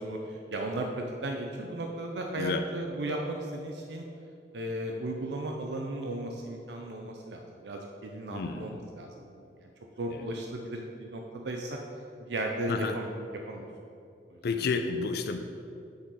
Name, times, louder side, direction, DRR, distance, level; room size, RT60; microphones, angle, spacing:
voice 1, 0.0-4.0 4.5-9.7 10.0-11.8 12.3-13.1 13.5-13.7 14.3-14.4, right 1 dB, 70° right, 2 dB, 0.5 m, -35 dB
voice 2, 8.3-8.9 10.1-10.3 12.7-13.0 14.4-15.5, left 4 dB, 60° left, 7 dB, 0.4 m, -31 dB
8.6 x 3.8 x 4.2 m, 2.7 s
head